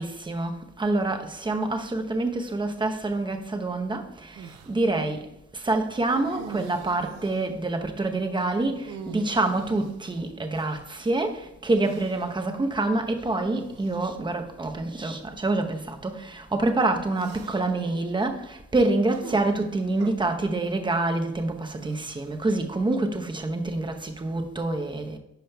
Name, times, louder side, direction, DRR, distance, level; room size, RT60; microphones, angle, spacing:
voice 1, 0.0-5.3 5.5-25.2, right 2 dB, 15° right, 0.8 m, -27 dB
sound 1, 4.4-4.8 6.0-7.6 8.7-11.0 11.8-12.4 13.5-14.0 14.9-15.0 17.1-17.8 19.1-20.1 21.7-22.5, right 6 dB, 90° right, 0.8 m, -45 dB
11.5 x 5.0 x 2.3 m
cardioid pair, 90°, 30 cm